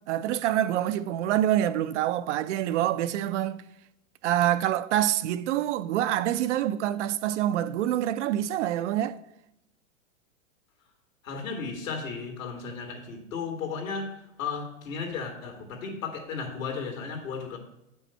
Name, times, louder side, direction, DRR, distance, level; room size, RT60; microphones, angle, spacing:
voice 1, 0.0-3.6 4.2-9.2, right 12 dB, 60° right, 0.5 m, -26 dB
voice 2, 11.2-17.6, left 5 dB, 75° left, 2.2 m, -35 dB
8.7 x 5.5 x 4.3 m
hypercardioid pair, 130°, 40 cm